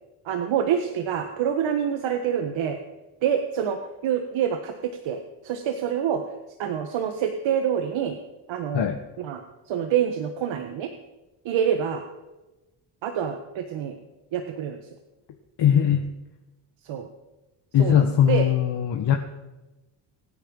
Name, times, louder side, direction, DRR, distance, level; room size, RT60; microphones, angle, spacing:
voice 1, 0.2-2.8 3.2-6.2 6.6-8.2 8.5-8.9 9.2-9.4 9.7-10.9 11.4-12.0 13.0-14.0 14.3-14.8 16.8-17.1 17.8-18.5, right 8 dB, 75° right, 6 dB, 1.6 m, -26 dB
voice 2, 15.6-16.0 17.7-19.1, left 9 dB, 60° left, 4 dB, 1.6 m, -20 dB
24.5 x 10.0 x 5.6 m, 1.1 s
cardioid pair, 100°, 46 cm